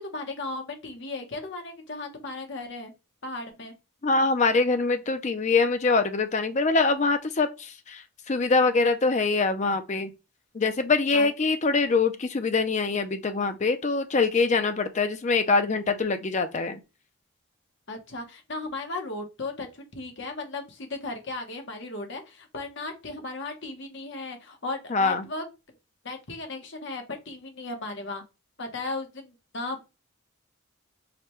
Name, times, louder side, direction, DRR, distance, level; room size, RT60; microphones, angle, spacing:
voice 1, 0.0-2.9 3.2-3.7 11.1-11.3 17.9-25.4 26.0-28.2 28.6-29.8, left 2 dB, 55° left, 0.9 m, -36 dB
voice 2, 4.0-10.1 10.5-16.8 24.9-25.2, left 3 dB, 35° left, 0.4 m, -24 dB
4.9 x 2.2 x 3.0 m
head